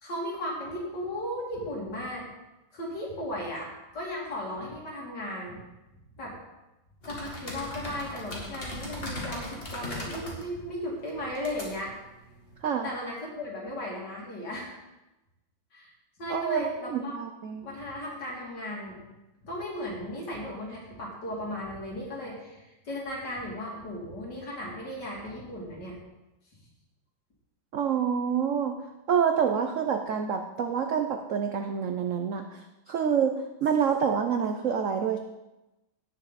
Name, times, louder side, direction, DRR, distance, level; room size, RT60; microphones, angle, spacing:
voice 1, 0.0-2.3 2.7-5.6 6.2-6.3 7.1-11.9 12.8-14.8 15.7-15.9 16.2-17.2 17.6-19.0 19.4-26.0, left 1 dB, 60° left, -3 dB, 3.5 m, -36 dB
sound 1, 7.0-12.6, left 1 dB, 30° left, 2.2 m, -39 dB
voice 2, 16.3-17.7 27.7-28.8 29.1-35.2, right 7 dB, 70° right, 6 dB, 0.7 m, -27 dB
17.5 x 6.6 x 4.1 m, 1.0 s
omnidirectional pair, 2.1 m